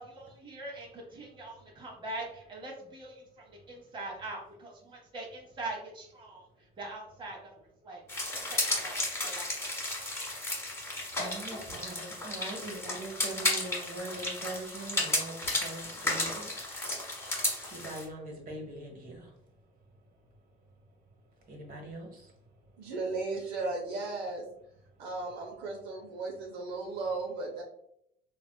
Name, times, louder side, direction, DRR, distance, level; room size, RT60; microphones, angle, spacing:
voice 1, 0.0-6.4 6.8-7.5 7.8-8.0 8.3-9.5 9.8-10.0, right 2 dB, 30° right, 0.9 m, -43 dB
voice 2, 1.5-1.9 3.4-4.0 5.0-5.1 6.4-6.8 7.9-22.9 24.9-25.1, right 2 dB, 55° right, 1.1 m, -45 dB
sound 1, 8.1-18.0, left 2 dB, 15° left, 1.1 m, -33 dB
voice 3, 22.8-24.4 25.0-27.6, right 3 dB, 75° right, 0.6 m, -35 dB
3.4 x 2.4 x 2.2 m
cardioid pair, 110°, 17 cm